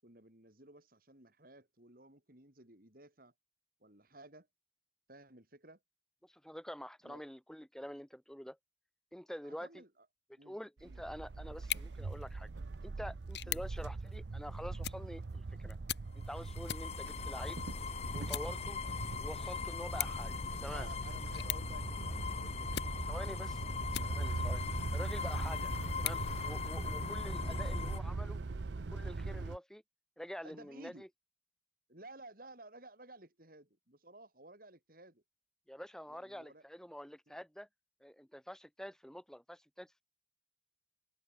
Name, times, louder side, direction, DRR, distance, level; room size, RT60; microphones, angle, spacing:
voice 1, 0.0-3.3 3.8-4.5 5.1-5.8 7.0-7.2 9.4-10.1 10.4-11.0 13.4-13.6 20.6-23.8 24.7-24.9 25.7-25.9 30.4-31.0 31.9-35.2 36.1-36.6 37.3-37.4, right 2 dB, 50° right, 5.4 m, -56 dB
voice 2, 6.2-8.6 9.1-9.8 10.5-12.5 12.8-15.8 16.1-17.6 18.1-18.8 19.2-20.9 23.1-23.6 24.0-24.6 24.9-25.7 26.0-28.4 28.9-29.8 30.2-31.1 35.7-37.7 38.0-39.9, equal, 5° left, 1.1 m, -47 dB
sound 1, 10.8-29.6, right 3 dB, 75° right, 0.6 m, -42 dB
sound 2, 11.5-24.5 25.0-27.1, left 11 dB, 65° left, 2.1 m, -45 dB
sound 3, 16.2-28.0, left 4 dB, 35° left, 0.5 m, -40 dB
open air
head